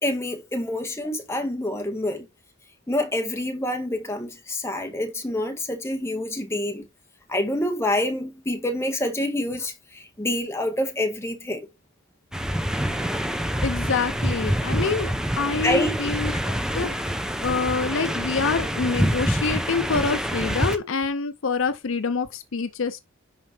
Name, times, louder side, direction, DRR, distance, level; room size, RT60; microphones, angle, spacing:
voice 1, 0.0-2.3 2.9-6.9 7.3-11.7 15.6-16.0, left 1 dB, 15° left, 1.7 m, -27 dB
sound 1, 12.3-20.8, equal, 5° right, 0.8 m, -26 dB
voice 2, 13.6-17.1 17.4-23.0, left 4 dB, 65° left, 0.7 m, -26 dB
11.0 x 4.4 x 3.4 m
head